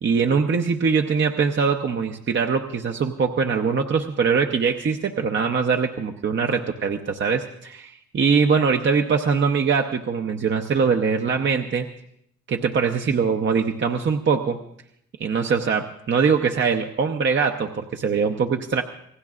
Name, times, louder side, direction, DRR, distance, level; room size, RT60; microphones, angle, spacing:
voice 1, 0.0-11.9 12.5-14.6 15.2-18.8, right 5 dB, 40° right, 3 dB, 0.8 m, -22 dB
27.0 x 18.5 x 2.5 m, 0.72 s
cardioid pair, 90°, 30 cm